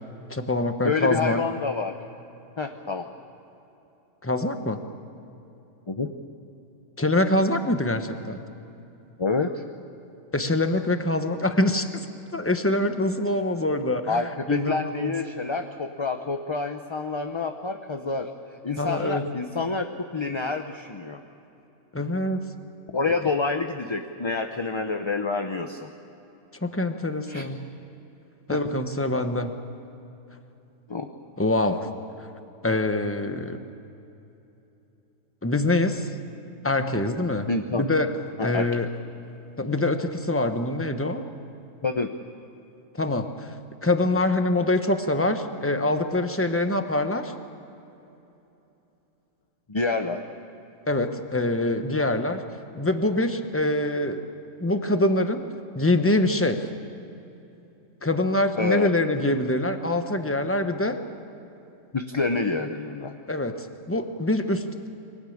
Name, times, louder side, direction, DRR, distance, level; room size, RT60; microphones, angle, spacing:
voice 1, 0.3-1.4 4.2-4.8 7.0-8.4 10.3-12.1 12.3-15.1 18.8-19.2 21.9-22.4 26.6-27.7 28.5-29.5 31.4-31.9 32.6-33.6 35.4-36.1 36.6-38.1 38.4-38.9 39.6-41.2 42.9-43.5 43.8-47.3 50.9-52.4 52.7-54.2 54.6-55.5 55.7-56.6 58.0-61.0 63.3-64.6, left 2 dB, 10° left, 7 dB, 1.1 m, -24 dB
voice 2, 0.8-1.9 2.6-3.1 5.9-6.1 9.2-9.6 14.1-18.3 18.6-19.9 20.1-21.2 22.9-25.9 27.3-27.5 28.5-28.6 30.9-31.1 37.5-37.8 38.4-38.7 41.8-42.1 49.7-50.2 58.6-58.9 61.9-63.1, left 4 dB, 25° left, 5 dB, 0.7 m, -27 dB
24.0 x 18.0 x 8.7 m, 2.9 s
omnidirectional pair, 1.4 m